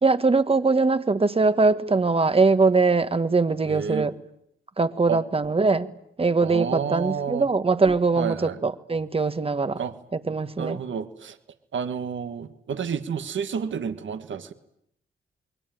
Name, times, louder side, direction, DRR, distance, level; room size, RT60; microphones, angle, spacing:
voice 1, 0.0-4.1 4.8-5.9 6.2-9.8 10.3-10.8, right 3 dB, 25° right, 12 dB, 1.5 m, -22 dB
voice 2, 3.6-4.1 5.1-5.2 6.4-7.4 8.2-8.6 9.8-9.9 10.6-11.4 11.7-14.5, right 7 dB, 65° right, 10 dB, 1.7 m, -30 dB
27.5 x 22.0 x 9.2 m, 0.75 s
cardioid pair, 100°, 21 cm